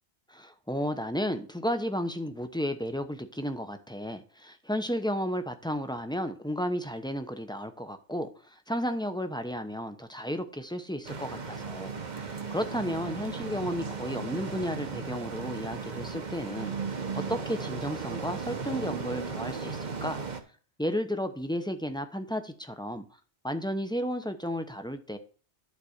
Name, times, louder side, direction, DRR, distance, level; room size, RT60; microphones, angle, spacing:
voice 1, 0.3-11.9 12.2-16.7 17.1-20.2 20.8-23.0 23.4-25.2, equal, 5° left, 0.7 m, -33 dB
sound 1, 11.0-20.4, right 5 dB, 40° right, 1.1 m, -36 dB
11.5 x 4.1 x 6.5 m
omnidirectional pair, 1.1 m